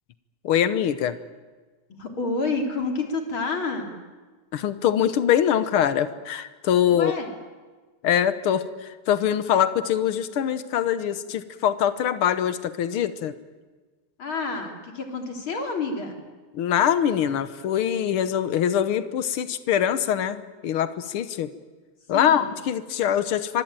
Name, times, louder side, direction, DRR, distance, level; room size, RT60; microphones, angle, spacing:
voice 1, 0.4-1.2 4.5-7.1 8.0-13.3 16.5-21.5 22.1-23.6, left 9 dB, 90° left, 13 dB, 1.9 m, -23 dB
voice 2, 2.0-4.0 6.9-7.3 14.2-16.2 22.1-22.5, left 3 dB, 70° left, 4 dB, 4.1 m, -29 dB
25.0 x 22.0 x 9.1 m, 1.4 s
omnidirectional pair, 2.3 m